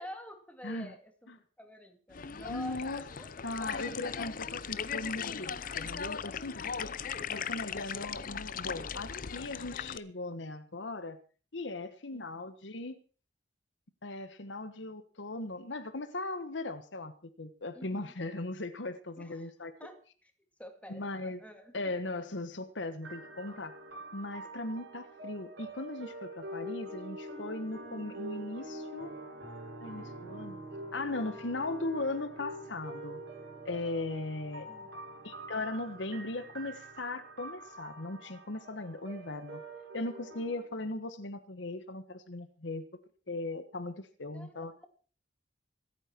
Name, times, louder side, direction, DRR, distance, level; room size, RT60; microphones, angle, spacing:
voice 1, 0.0-1.3 1.6-3.5 12.1-12.4 17.7-18.1 19.2-19.5 19.8-20.3 20.6-21.7 34.6-35.0 44.3-44.9, equal, 10° left, 5 dB, 2.3 m, -48 dB
voice 2, 0.6-0.9 1.3-1.4 2.5-3.0 3.4-6.9 7.3-11.2 11.5-13.0 14.0-17.1 17.4-19.7 20.9-21.4 21.7-23.8 24.1-29.1 29.8-30.6 30.9-33.2 33.6-34.7 35.2-39.6 39.9-42.8 43.3-44.7, left 2 dB, 75° left, 10 dB, 1.3 m, -38 dB
sound 1, 2.1-10.0, left 7 dB, 50° left, 0.6 m, -38 dB
sound 2, 23.0-40.6, right 1 dB, 75° right, 7.5 m, -45 dB
26.0 x 9.0 x 4.5 m, 0.39 s
head